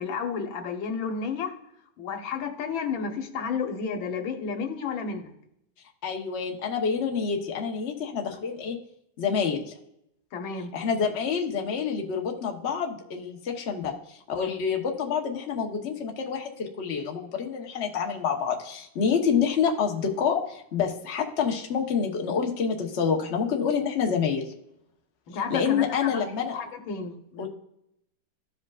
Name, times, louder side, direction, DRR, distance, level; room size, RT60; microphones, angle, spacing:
voice 1, 0.0-1.5 2.0-5.3 10.3-10.7 25.3-26.2 26.5-27.5, left 5 dB, 85° left, 5 dB, 1.8 m, -32 dB
voice 2, 6.0-8.8 9.2-9.7 10.7-24.4 25.5-26.6 27.4-27.5, left 6 dB, 40° left, 2 dB, 1.1 m, -27 dB
14.5 x 5.1 x 2.4 m, 0.78 s
omnidirectional pair, 2.1 m